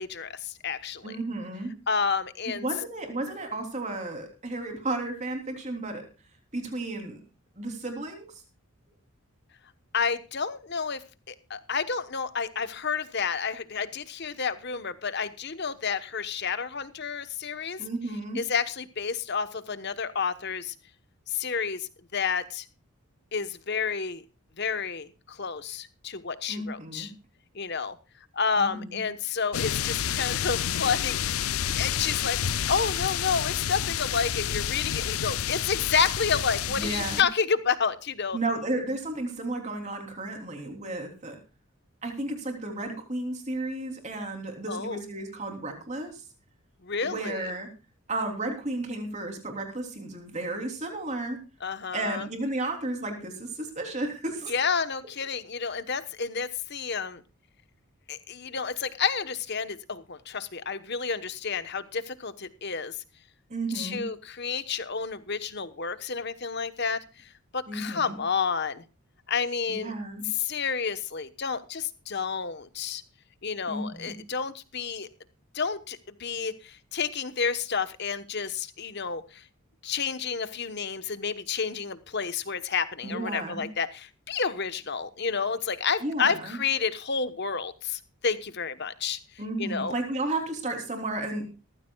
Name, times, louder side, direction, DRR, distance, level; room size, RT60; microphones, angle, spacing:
voice 1, 0.0-1.1 1.9-2.7 9.9-17.8 18.3-20.7 21.3-22.6 23.3-24.2 24.6-27.1 27.5-28.0 28.3-38.4 44.7-45.0 46.8-47.4 51.6-52.3 54.5-57.2 58.1-63.0 63.7-68.8 69.3-69.9 70.2-73.0 73.4-75.1 75.5-79.4 79.8-89.2 89.6-89.9, left 5 dB, 50° left, 12 dB, 1.1 m, -30 dB
voice 2, 1.0-1.7 2.5-6.0 6.5-7.2 7.6-8.2 17.8-18.4 26.5-27.1 28.6-29.0 36.7-37.2 38.3-41.4 42.0-46.2 47.0-47.7 48.1-51.4 51.9-54.5 63.5-64.0 67.7-68.2 69.7-70.2 73.7-74.1 83.0-83.6 86.0-86.6 89.4-91.4, right 2 dB, 30° right, 4 dB, 3.2 m, -33 dB
sound 1, 29.5-37.2, left 9 dB, 75° left, 0.5 m, -29 dB
18.5 x 14.5 x 2.3 m, 0.32 s
head